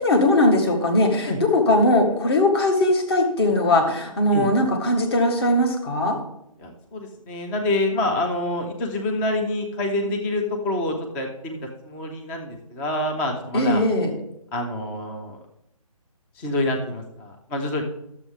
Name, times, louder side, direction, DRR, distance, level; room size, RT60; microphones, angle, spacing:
voice 1, 0.0-6.2 13.5-14.1, left 1 dB, 45° left, 3 dB, 1.8 m, -20 dB
voice 2, 6.6-11.6 11.8-13.8 14.5-15.4 16.4-17.8, left 1 dB, 5° left, 3 dB, 0.4 m, -27 dB
12.0 x 7.1 x 3.5 m, 0.82 s
figure-of-eight pair, 150°, 19 cm